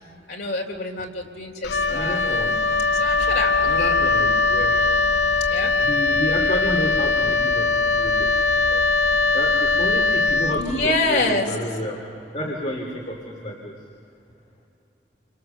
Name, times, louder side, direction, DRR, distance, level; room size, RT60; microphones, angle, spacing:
voice 1, 0.3-2.5 2.9-3.9 5.5-5.7 10.6-11.5, left 2 dB, 65° left, 1 dB, 3.5 m, -26 dB
Wind instrument woodwind instrument, 1.6-11.1, left 3 dB, 80° left, 0.8 m, -21 dB
voice 2, 1.9-2.7 3.6-4.9 5.8-8.4 8.7-9.0 9.3-12.1 12.3-13.7, equal, 45° left, 0 dB, 2.7 m, -30 dB
29.5 x 26.0 x 6.8 m, 2.8 s
head